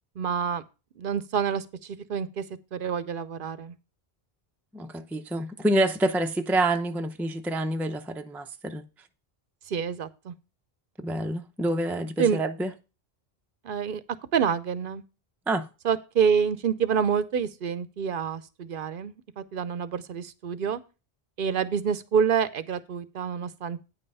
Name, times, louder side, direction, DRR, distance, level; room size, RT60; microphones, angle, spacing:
voice 1, 0.2-0.6 1.0-2.4 2.7-3.7 9.7-10.3 12.2-12.4 13.6-14.0 14.3-15.0 15.8-20.8 21.4-23.8, right 7 dB, 65° right, 0.7 m, -27 dB
voice 2, 4.7-8.8 11.0-12.7 15.5-15.7, right 1 dB, ahead, 0.4 m, -27 dB
9.3 x 5.5 x 5.4 m
omnidirectional pair, 1.0 m